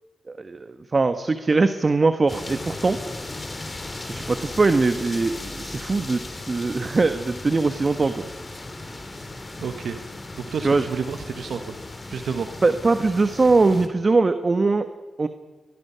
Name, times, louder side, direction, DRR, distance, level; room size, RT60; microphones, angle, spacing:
voice 1, 0.3-3.0 4.1-8.3 10.6-10.8 12.6-14.9 15.2-15.3, right 3 dB, 45° right, 9 dB, 1.3 m, -21 dB
sound 1, 2.3-13.9, left 2 dB, 30° left, 3.3 m, -36 dB
voice 2, 9.6-10.0 10.3-11.8 12.1-12.5, right 6 dB, 75° right, 7 dB, 1.3 m, -30 dB
29.5 x 22.0 x 5.8 m, 1.3 s
supercardioid pair, 40°, 0 cm